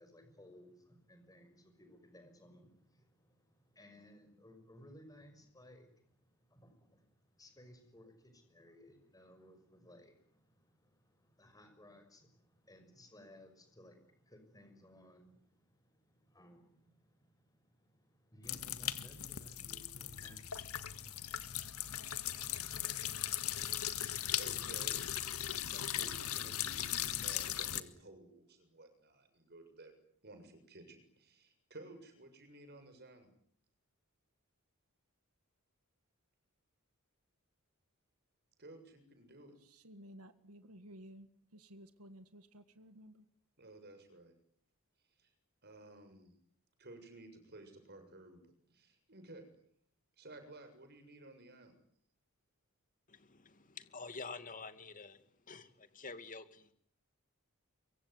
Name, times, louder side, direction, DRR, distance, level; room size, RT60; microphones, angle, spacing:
voice 1, 0.0-21.5, left 1 dB, 15° left, 7 dB, 6.2 m, -60 dB
sound 1, 18.4-27.8, left 11 dB, 80° left, 1.8 m, -38 dB
voice 2, 24.4-25.0 25.7-29.9 30.2-33.3 38.6-39.5 43.6-44.3 45.2-45.3 45.6-46.3 46.8-48.4 48.7-49.4 50.2-51.7, right 2 dB, 50° right, 8 dB, 7.2 m, -54 dB
voice 3, 39.7-43.2, equal, 80° right, 10 dB, 1.7 m, -55 dB
voice 4, 53.1-56.7, left 4 dB, 35° left, 11 dB, 2.3 m, -48 dB
24.5 x 24.0 x 9.6 m, 0.64 s
head